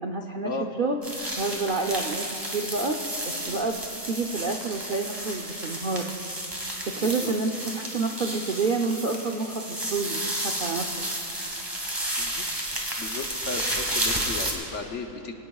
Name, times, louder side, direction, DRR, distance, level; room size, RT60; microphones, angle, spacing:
voice 1, 0.0-0.5 0.8-1.0 1.4-3.0 3.3-3.8 4.1-6.1 6.9-10.9, right 3 dB, 50° right, 1 dB, 0.6 m, -28 dB
sound 1, 1.0-14.5, right 1 dB, 15° right, 1.9 m, -32 dB
voice 2, 7.0-7.3 12.2-12.7 13.0-15.3, left 4 dB, 55° left, 4 dB, 1.1 m, -35 dB
24.5 x 17.5 x 2.3 m, 2.9 s
omnidirectional pair, 1.6 m